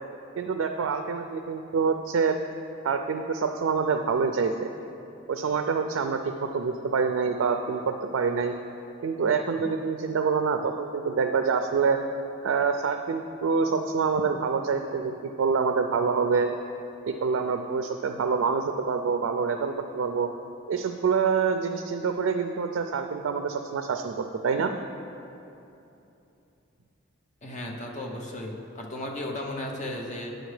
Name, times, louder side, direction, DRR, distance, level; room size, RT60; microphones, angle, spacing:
voice 1, 0.4-2.4 2.8-4.7 5.3-8.6 9.0-12.0 12.4-16.5 17.1-20.3 20.7-24.7, right 5 dB, 85° right, 6 dB, 0.3 m, -26 dB
voice 2, 27.4-30.3, left 1 dB, 40° left, 0 dB, 0.8 m, -35 dB
9.0 x 6.4 x 3.2 m, 2.8 s
head